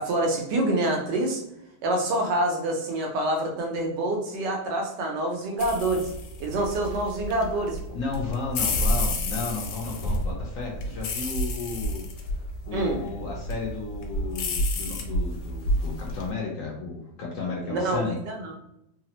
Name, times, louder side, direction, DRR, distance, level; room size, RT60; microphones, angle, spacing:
voice 1, 0.0-1.4 1.8-6.1 6.4-7.8 12.7-13.0 17.7-18.5, right 1 dB, 85° right, 1 dB, 1.3 m, -26 dB
sound 1, 5.6-16.3, left 1 dB, 80° left, 1.2 m, -30 dB
voice 2, 7.9-12.0 12.7-18.2, left 4 dB, 65° left, -2 dB, 0.9 m, -33 dB
3.2 x 2.0 x 2.9 m, 0.80 s
omnidirectional pair, 1.8 m